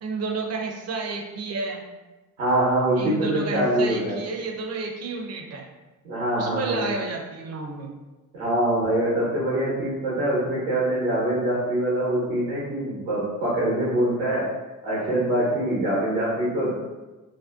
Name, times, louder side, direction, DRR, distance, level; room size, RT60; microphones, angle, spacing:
voice 1, 0.0-1.8 3.0-5.7 6.4-7.9, right 4 dB, 40° right, 2 dB, 0.5 m, -31 dB
voice 2, 2.4-4.2 6.0-6.9 8.3-14.4 14.8-16.7, right 1 dB, 90° right, -9 dB, 0.8 m, -24 dB
2.6 x 2.1 x 2.3 m, 1.2 s
hypercardioid pair, 50°, 42 cm